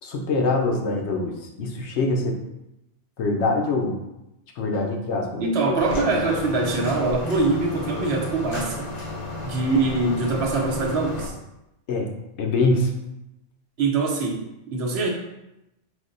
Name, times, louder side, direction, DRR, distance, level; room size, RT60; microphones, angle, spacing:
voice 1, 0.0-2.4 3.2-4.0 4.6-5.5 11.9-12.1 12.4-12.9, left 2 dB, 75° left, 1 dB, 0.9 m, -24 dB
voice 2, 5.4-8.9 9.4-11.3 13.8-15.1, right 3 dB, 65° right, 0 dB, 0.9 m, -23 dB
sound 1, 5.8-11.3, left 1 dB, 45° left, 0.6 m, -32 dB
5.0 x 2.1 x 3.8 m, 0.91 s
omnidirectional pair, 1.2 m